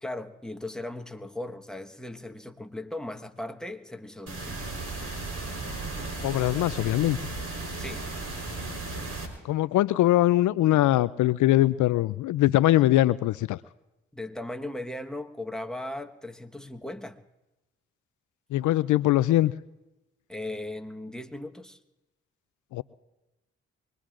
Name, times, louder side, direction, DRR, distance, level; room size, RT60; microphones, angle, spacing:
voice 1, 0.0-4.6 7.8-8.1 14.1-17.2 20.3-21.8, left 1 dB, ahead, 5 dB, 1.3 m, -37 dB
sound 1, 4.3-9.3, right 3 dB, 50° right, 4.2 m, -35 dB
voice 2, 6.0-7.2 9.4-13.6 18.5-19.5 22.7-22.8, left 15 dB, 75° left, 17 dB, 0.4 m, -22 dB
24.5 x 20.0 x 2.5 m, 0.99 s
supercardioid pair, 45°, 30 cm